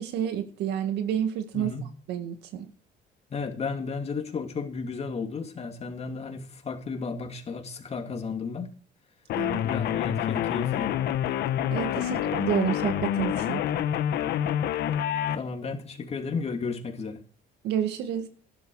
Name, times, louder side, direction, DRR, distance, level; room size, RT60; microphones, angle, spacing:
voice 1, 0.0-1.7 2.1-2.7 9.4-9.6 11.7-13.6 17.6-18.3, right 10 dB, 80° right, 1.9 m, -29 dB
voice 2, 1.5-1.9 3.3-8.7 9.6-10.9 12.1-12.2 15.3-17.2, left 4 dB, 40° left, 2.7 m, -33 dB
sound 1, 9.3-15.4, left 11 dB, 70° left, 1.1 m, -27 dB
12.0 x 11.5 x 4.9 m
cardioid pair, 110°, 17 cm